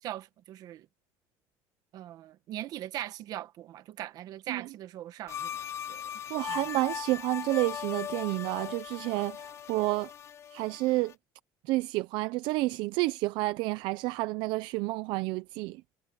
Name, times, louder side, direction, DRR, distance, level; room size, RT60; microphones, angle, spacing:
voice 1, 0.0-0.9 1.9-5.6 5.9-6.1 6.5-6.6, right 13 dB, 50° right, 1.3 m, -40 dB
sound 1, 5.3-11.1, left 9 dB, 35° left, 0.7 m, -39 dB
voice 2, 6.3-10.1 10.5-11.1 11.6-15.8, right 20 dB, 70° right, 0.5 m, -30 dB
cardioid pair, 160°, 8 cm